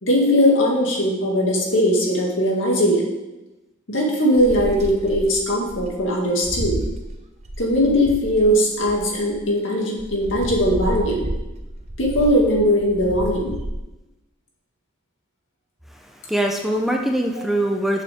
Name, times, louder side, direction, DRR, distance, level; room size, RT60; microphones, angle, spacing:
voice 1, 0.0-3.0 3.9-6.8 7.6-11.3 12.0-13.5, equal, 70° left, -2 dB, 2.4 m, -19 dB
sound 1, 4.4-9.5 10.0-13.8, right 1 dB, 35° right, 0.9 m, -31 dB
voice 2, 15.9-18.0, right 1 dB, ahead, 2 dB, 0.6 m, -23 dB
12.0 x 6.7 x 3.6 m, 1.0 s
head